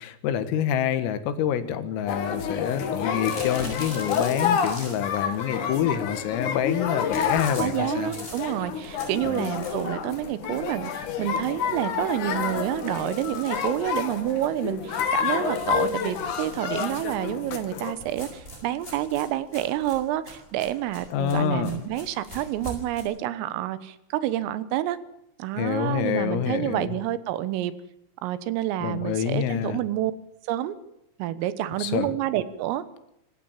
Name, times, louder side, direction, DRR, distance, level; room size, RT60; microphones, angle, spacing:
voice 1, 0.0-8.1 9.2-9.5 21.1-21.9 25.6-27.0 28.8-29.8 31.8-32.2, left 9 dB, 90° left, 11 dB, 4.2 m, -27 dB
sound 1, 2.1-17.9, left 7 dB, 55° left, 2.4 m, -29 dB
sound 2, 3.2-5.2 7.1-10.0 10.5-10.6 10.9-11.0 11.3-11.4 12.1-14.6 15.4-17.2 18.0-23.0, equal, 10° left, 7.0 m, -43 dB
voice 2, 7.6-25.0 25.4-27.7 28.2-30.1 30.5-30.8 31.2-32.8, right 13 dB, 85° right, 14 dB, 3.8 m, -28 dB
26.0 x 15.5 x 7.4 m, 0.81 s
omnidirectional pair, 5.8 m